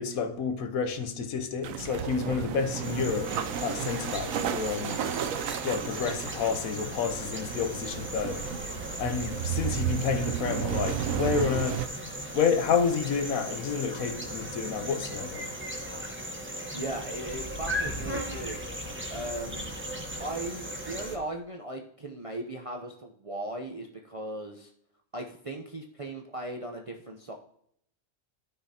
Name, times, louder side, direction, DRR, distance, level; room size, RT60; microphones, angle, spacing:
voice 1, 0.0-3.3 3.6-5.0 5.6-8.5 9.0-11.9 12.3-15.5, left 6 dB, 75° left, 1.3 m, -29 dB
sound 1, 1.6-11.9, right 9 dB, 70° right, 1.0 m, -33 dB
sound 2, 2.8-21.2, equal, 10° right, 0.9 m, -37 dB
voice 2, 16.7-18.6 19.1-19.9 20.2-24.7 25.1-27.3, right 1 dB, 35° right, 0.5 m, -37 dB
13.5 x 5.7 x 2.8 m
omnidirectional pair, 1.5 m